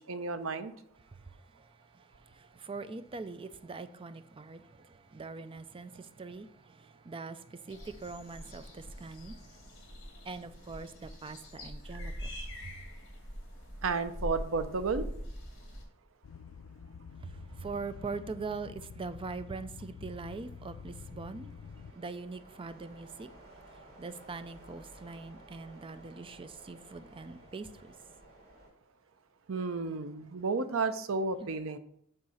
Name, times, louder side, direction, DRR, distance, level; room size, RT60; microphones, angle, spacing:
voice 1, 0.1-0.7 13.8-15.1 29.5-31.8, right 4 dB, 75° right, 0.6 m, -32 dB
voice 2, 1.1-9.7 10.2-12.7 17.2-21.6 21.9-23.3 23.7-28.0 31.4-31.6, right 4 dB, 25° right, 0.4 m, -43 dB
sound 1, 7.7-15.8, equal, 55° left, 2.3 m, -43 dB
sound 2, 15.9-28.7, right 1 dB, 55° right, 2.7 m, -57 dB
sound 3, 16.2-21.9, left 6 dB, 80° left, 0.4 m, -48 dB
7.7 x 3.7 x 5.6 m
head